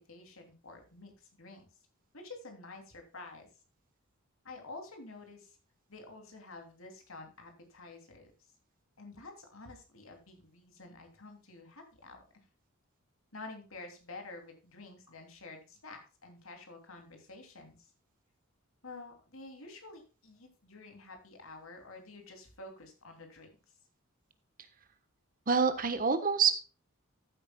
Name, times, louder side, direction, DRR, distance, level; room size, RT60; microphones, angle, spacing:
voice 1, 0.1-1.7 2.1-3.5 4.4-5.5 5.9-8.3 9.0-12.2 13.3-17.8 18.8-23.5, left 3 dB, 70° left, 4 dB, 3.0 m, -49 dB
voice 2, 25.5-26.5, right 5 dB, 40° right, 10 dB, 1.3 m, -26 dB
14.0 x 8.8 x 2.3 m, 0.34 s
head